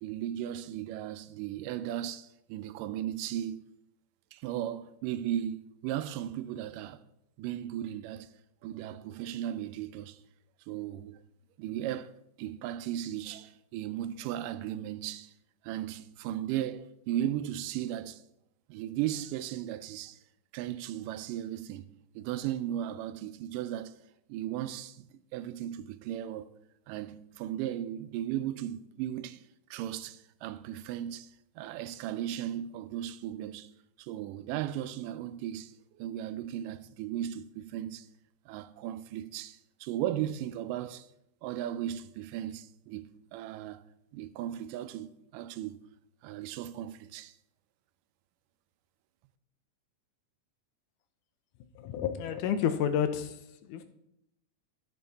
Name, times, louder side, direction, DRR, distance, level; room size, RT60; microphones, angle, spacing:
voice 1, 0.0-3.7 4.3-7.0 7.4-8.3 8.6-10.2 10.7-11.2 11.6-15.3 15.6-18.3 18.7-20.2 20.5-21.9 22.2-24.0 24.3-26.5 26.9-29.4 29.7-33.7 34.0-38.1 38.5-41.1 41.4-43.8 44.1-45.8 46.2-47.4, right 11 dB, 90° right, 2.2 m, -36 dB
voice 2, 51.8-53.4 53.7-53.8, left 9 dB, 80° left, 2.2 m, -30 dB
13.5 x 7.0 x 4.0 m
omnidirectional pair, 3.7 m